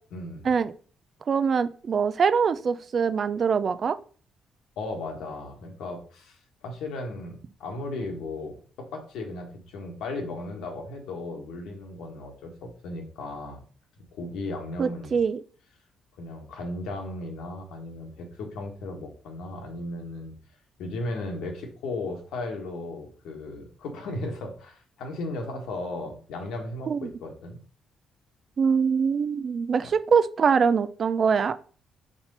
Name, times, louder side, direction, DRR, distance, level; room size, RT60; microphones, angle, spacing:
voice 1, 0.1-0.5 4.8-13.6 14.0-15.2 16.2-20.3 20.8-27.6 29.8-29.9, left 2 dB, 85° left, 2 dB, 1.5 m, -36 dB
voice 2, 1.3-4.0 14.8-15.4 26.9-27.1 28.6-31.6, right 6 dB, 50° right, 13 dB, 0.4 m, -23 dB
4.4 x 4.2 x 5.3 m, 0.42 s
cardioid pair, 90°, 0 cm